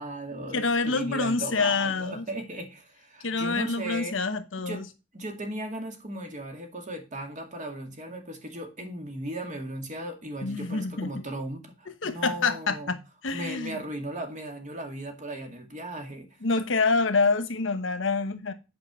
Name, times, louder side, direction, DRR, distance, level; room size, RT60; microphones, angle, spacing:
voice 1, 0.0-4.2 4.7-4.9 5.1-12.9 13.3-16.3, right 1 dB, 40° right, 2.1 m, -37 dB
voice 2, 0.5-2.3 3.2-4.8 10.4-11.1 12.0-13.8 16.4-18.5, left 4 dB, 75° left, 1.1 m, -27 dB
8.7 x 5.0 x 6.0 m
head